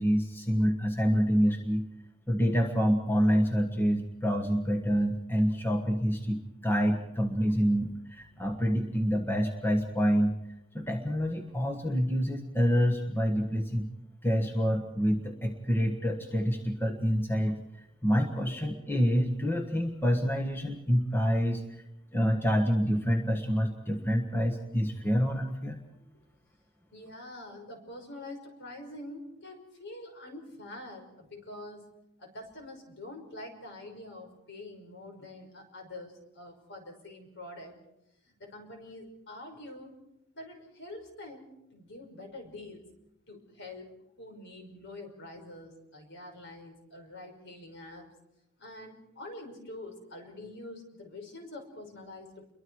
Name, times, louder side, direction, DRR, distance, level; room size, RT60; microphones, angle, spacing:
voice 1, 0.0-1.8 2.3-10.4 10.7-13.9 14.2-17.6 18.0-21.8 22.1-25.8, equal, 10° left, 2 dB, 1.5 m, -27 dB
voice 2, 26.9-31.9 32.2-37.8 38.2-40.0 40.3-42.8 43.3-48.1 48.6-52.5, left 1 dB, 55° left, 3 dB, 5.4 m, -46 dB
29.5 x 23.0 x 4.8 m, 0.84 s
head